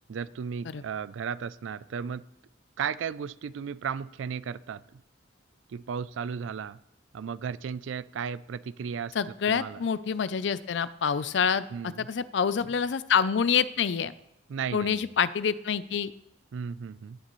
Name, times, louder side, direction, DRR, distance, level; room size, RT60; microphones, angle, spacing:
voice 1, 0.1-2.2 2.8-5.0 5.7-6.8 7.1-9.8 11.7-12.1 14.5-15.1 16.5-17.2, right 6 dB, 80° right, 18 dB, 0.4 m, -35 dB
voice 2, 9.1-14.1 14.7-16.1, left 6 dB, 65° left, 16 dB, 0.4 m, -27 dB
16.5 x 6.6 x 3.1 m, 0.84 s
head